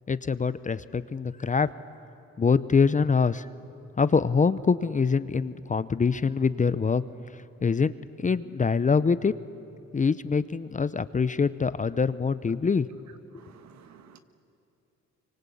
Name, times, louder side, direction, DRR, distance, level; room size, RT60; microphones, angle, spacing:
voice 1, 0.1-1.7 2.4-3.5 4.0-7.0 7.3-7.9 8.2-9.3 9.9-12.9 13.3-13.4, left 5 dB, 25° left, 0.7 m, -24 dB
voice 2, 13.3-14.2, right 8 dB, 65° right, 1.6 m, -53 dB
25.5 x 24.5 x 8.6 m
cardioid pair, 90°, 30 cm